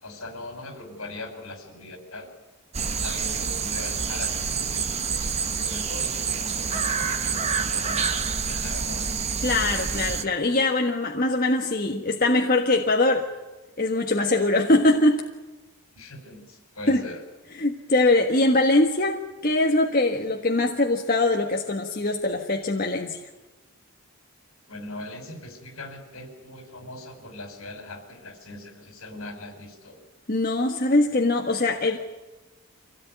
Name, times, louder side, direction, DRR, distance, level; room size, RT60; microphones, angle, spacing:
voice 1, 0.0-2.3 2.9-9.1 15.9-17.2 24.7-30.0, left 2 dB, 70° left, 6 dB, 5.1 m, -40 dB
sound 1, 2.7-10.2, right 6 dB, 30° right, 1.1 m, -27 dB
voice 2, 9.4-13.3 13.8-15.2 16.9-17.0 17.6-23.2 30.3-32.0, left 2 dB, 40° left, 1 dB, 1.6 m, -22 dB
25.0 x 17.5 x 9.2 m, 1.1 s
head